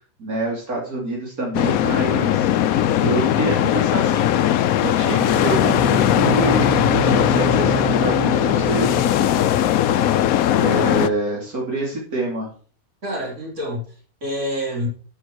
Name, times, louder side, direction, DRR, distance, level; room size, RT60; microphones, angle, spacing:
voice 1, 0.2-4.5 4.8-9.1 10.6-12.5, right 2 dB, 85° right, -2 dB, 3.5 m, -26 dB
sound 1, 1.5-11.1, left 11 dB, 75° left, 1.1 m, -19 dB
Bowed string instrument, 5.1-10.1, right 4 dB, 5° right, 5.7 m, -28 dB
voice 2, 13.0-14.9, equal, 55° right, -2 dB, 4.3 m, -28 dB
13.5 x 6.3 x 4.6 m, 0.41 s
omnidirectional pair, 1.5 m